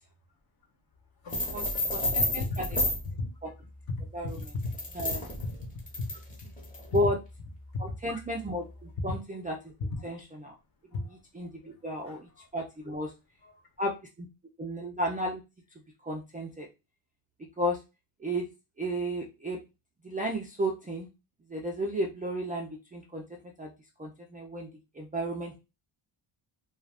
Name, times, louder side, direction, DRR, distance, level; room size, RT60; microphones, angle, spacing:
voice 1, 1.2-2.5 3.0-3.3 3.9-5.0 5.7-6.2 7.7-7.8 8.1-8.2 9.1-9.2 9.9-10.2 10.9-11.2 11.6-12.5 13.4-13.5, left 2 dB, 45° left, 3 dB, 1.0 m, -37 dB
sound 1, 1.3-3.1 4.3-7.0, left 1 dB, 15° left, 0.9 m, -31 dB
voice 2, 1.9-2.7 3.4-3.5 4.1-4.4 4.9-5.2 6.9-7.2 7.8-9.7 10.0-10.6 11.3-13.1 13.8-14.3 14.6-15.4 16.0-16.7 17.6-17.8 18.2-18.5 18.8-19.6 20.0-21.1 21.5-23.2 23.6-23.7 24.0-24.7 24.9-25.5, equal, 20° right, -1 dB, 0.3 m, -33 dB
2.4 x 2.4 x 3.3 m, 0.26 s
cardioid pair, 135°, 50 cm